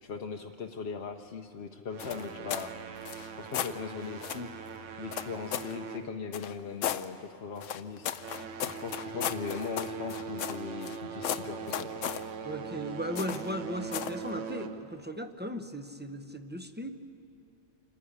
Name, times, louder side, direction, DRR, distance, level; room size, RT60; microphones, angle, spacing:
voice 1, 0.0-2.7 3.4-4.5 5.0-8.1 8.7-12.0, left 6 dB, 60° left, 3 dB, 0.9 m, -39 dB
sound 1, 1.9-6.8 7.1-7.4 8.0-15.1, right 5 dB, 80° right, 1.2 m, -41 dB
sound 2, 2.0-2.7 3.0-3.8 4.2-4.5 5.1-5.8 6.3-7.1 7.6-11.0 11.2-12.2 13.2-13.5 13.9-14.2, left 10 dB, 90° left, 1.0 m, -35 dB
voice 2, 12.4-16.9, equal, 10° right, 8 dB, 0.6 m, -37 dB
27.0 x 10.5 x 10.0 m, 2.5 s
omnidirectional pair, 1.3 m